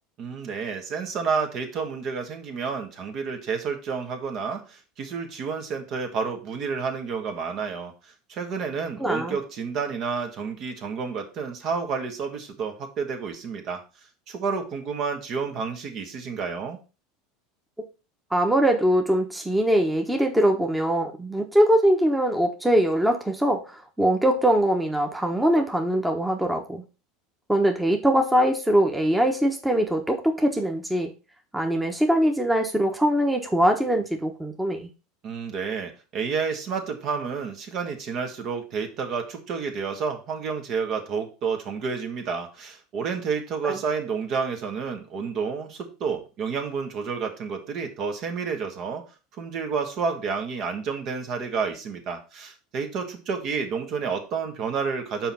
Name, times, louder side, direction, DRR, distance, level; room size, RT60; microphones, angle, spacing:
voice 1, 0.2-13.8 14.3-16.8 35.2-49.0 49.4-55.3, right 5 dB, 50° right, 5 dB, 1.7 m, -30 dB
voice 2, 9.0-9.4 18.3-26.8 27.5-31.1 31.5-34.9 43.6-43.7, right 1 dB, 5° right, 3 dB, 1.1 m, -22 dB
5.6 x 4.6 x 5.5 m, 0.32 s
supercardioid pair, 100°, 0 cm